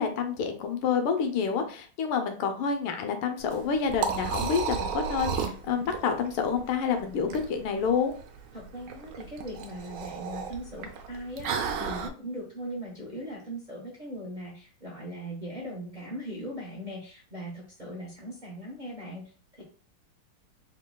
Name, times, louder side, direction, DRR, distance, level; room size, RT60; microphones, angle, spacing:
voice 1, 0.0-8.1, left 6 dB, 85° left, 6 dB, 1.6 m, -28 dB
Liquid, 3.4-12.1, right 6 dB, 80° right, 1.5 m, -34 dB
voice 2, 8.5-19.6, equal, 35° right, -5 dB, 0.8 m, -39 dB
4.4 x 3.7 x 2.3 m, 0.40 s
omnidirectional pair, 2.3 m